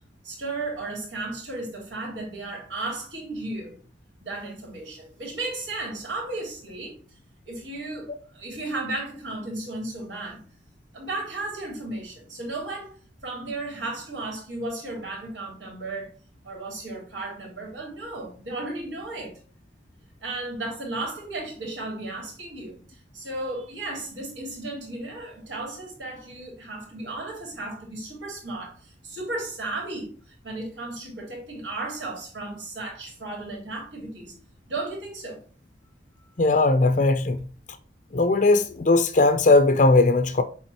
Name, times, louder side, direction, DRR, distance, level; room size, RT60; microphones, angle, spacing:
voice 1, 0.2-3.8 4.2-7.0 7.5-10.4 10.9-12.9 13.2-16.1 16.4-19.4 20.2-30.1 30.4-34.3 34.7-35.4, right 2 dB, 90° right, 3.5 m, -34 dB
voice 2, 36.4-37.4 38.1-40.4, left 2 dB, 45° left, 0.5 m, -19 dB
8.8 x 3.6 x 4.2 m
head